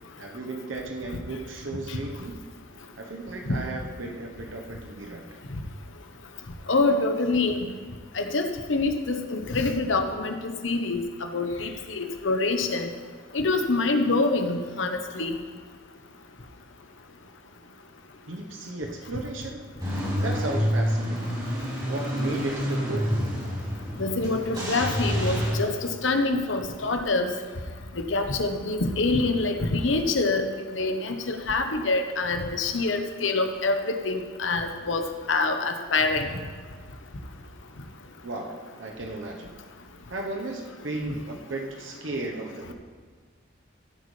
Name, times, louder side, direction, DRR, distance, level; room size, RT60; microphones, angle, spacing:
voice 1, 0.2-2.4 3.0-5.4 18.3-19.6 20.2-21.4 21.8-23.1 38.2-39.5 40.1-42.7, right 2 dB, 90° right, 1 dB, 1.0 m, -35 dB
voice 2, 6.7-7.6 8.1-11.0 11.3-12.9 13.3-15.4 24.0-27.3 28.1-36.3, left 3 dB, 80° left, 6 dB, 1.0 m, -26 dB
Car / Engine starting / Idling, 19.8-25.5, equal, 25° right, 2.8 m, -28 dB
15.0 x 8.3 x 3.3 m, 1.5 s
head